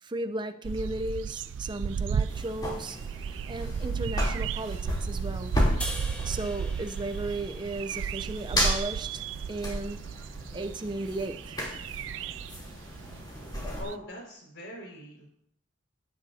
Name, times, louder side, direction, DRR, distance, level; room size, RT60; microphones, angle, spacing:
voice 1, 0.0-3.0 3.5-5.6 6.2-10.1 10.5-11.6, right 2 dB, 25° right, 0.6 m, -35 dB
sound 1, 0.6-13.6 13.9-14.0, right 7 dB, 75° right, 0.3 m, -34 dB
sound 2, 2.3-13.8, equal, 20° left, 3.3 m, -34 dB
sound 3, 5.8-9.1, equal, 5° left, 1.5 m, -42 dB
voice 2, 13.7-15.3, equal, 70° left, 5.3 m, -42 dB
17.0 x 10.0 x 2.8 m
head